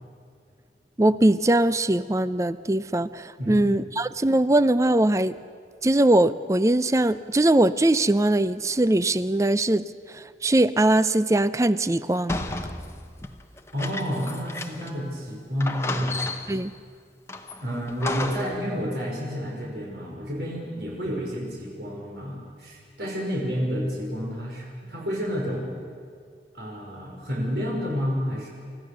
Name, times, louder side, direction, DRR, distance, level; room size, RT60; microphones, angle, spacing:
voice 1, 1.0-5.3 5.8-12.4 16.5-16.7, right 1 dB, 15° right, 15 dB, 0.5 m, -21 dB
voice 2, 3.4-3.7 13.7-16.2 17.6-25.7 26.5-28.5, equal, 70° right, -3 dB, 5.3 m, -30 dB
sound 1, 12.3-15.0 15.3-15.4 15.6-16.7 17.3-18.6, left 2 dB, 15° left, 0.9 m, -33 dB
29.0 x 15.0 x 6.7 m, 2.2 s
head